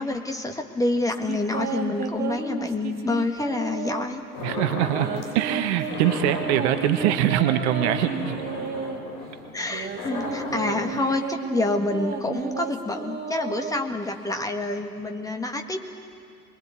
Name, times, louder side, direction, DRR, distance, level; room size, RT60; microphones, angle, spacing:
voice 1, 0.0-4.2 9.5-15.8, left 2 dB, 5° left, 4 dB, 1.7 m, -27 dB
sound 1, 1.1-4.2 4.8-9.0 9.6-14.3, right 5 dB, 20° right, 2.9 m, -33 dB
sound 2, 4.3-5.4 5.8-11.0, left 3 dB, 40° left, 5.5 m, -35 dB
voice 2, 4.4-8.3, right 11 dB, 45° right, 8 dB, 1.6 m, -23 dB
28.5 x 21.5 x 8.5 m, 2.3 s
figure-of-eight pair, 95°, 46 cm